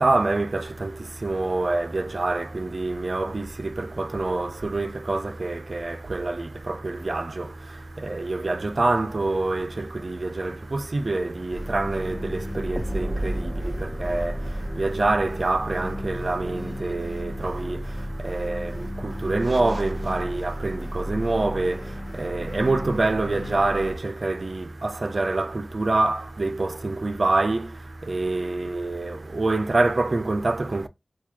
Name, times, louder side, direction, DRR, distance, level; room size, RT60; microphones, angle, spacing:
voice 1, 0.0-30.9, right 2 dB, 60° right, 0.4 m, -26 dB
sound 1, 11.5-24.0, equal, 15° left, 0.7 m, -33 dB
4.6 x 2.3 x 2.8 m
cardioid pair, 40°, 0 cm